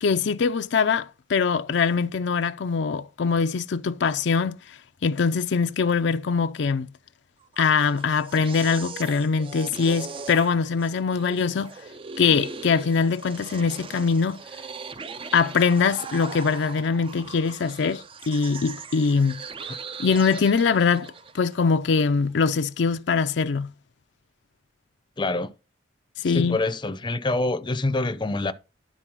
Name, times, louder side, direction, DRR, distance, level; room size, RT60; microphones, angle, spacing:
voice 1, 0.0-6.9 7.6-11.7 12.2-14.4 15.3-19.4 20.0-23.7 26.2-26.6, left 5 dB, 70° left, 0.5 m, -23 dB
sound 1, 7.4-21.5, right 5 dB, 30° right, 0.4 m, -40 dB
voice 2, 25.2-25.5 26.2-28.5, left 2 dB, 25° left, 0.6 m, -26 dB
11.5 x 4.0 x 6.0 m
head